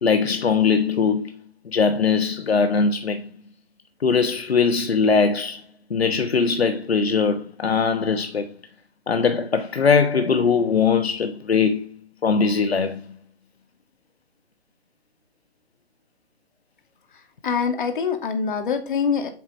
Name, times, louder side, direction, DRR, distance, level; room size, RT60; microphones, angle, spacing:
voice 1, 0.0-1.4 1.7-3.2 4.0-5.6 5.9-8.5 9.1-13.0, left 5 dB, 75° left, 1.2 m, -21 dB
voice 2, 17.4-19.3, left 6 dB, 50° left, 2.5 m, -24 dB
8.3 x 7.5 x 6.4 m
hypercardioid pair, 150°, 31 cm